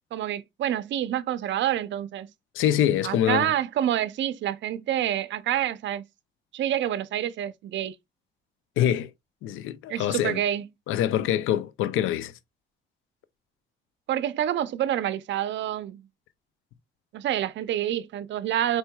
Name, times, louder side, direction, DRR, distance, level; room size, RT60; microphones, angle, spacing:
voice 1, 0.1-2.3 3.0-6.0 6.5-7.9 9.9-10.6 14.1-16.1 17.1-18.8, right 11 dB, 65° right, 0.5 m, -27 dB
voice 2, 2.5-3.5 8.8-9.1 9.4-10.4 10.9-12.3, left 11 dB, 85° left, 0.5 m, -25 dB
4.4 x 4.3 x 2.3 m
cardioid pair, 90°, 20 cm